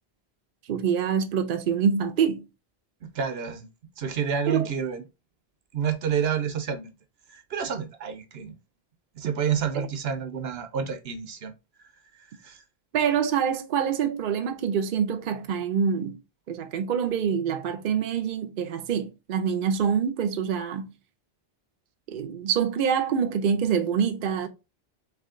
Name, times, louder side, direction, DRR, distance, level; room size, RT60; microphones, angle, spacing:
voice 1, 0.7-2.4 4.5-4.7 9.7-9.9 12.9-16.2 16.5-20.9 22.1-24.5, right 7 dB, 60° right, 0.7 m, -25 dB
voice 2, 3.0-3.7 4.0-5.0 5.7-6.9 7.3-8.5 9.2-11.5 12.4-12.6, right 7 dB, 80° right, 0.9 m, -29 dB
3.4 x 3.0 x 3.6 m
omnidirectional pair, 1.1 m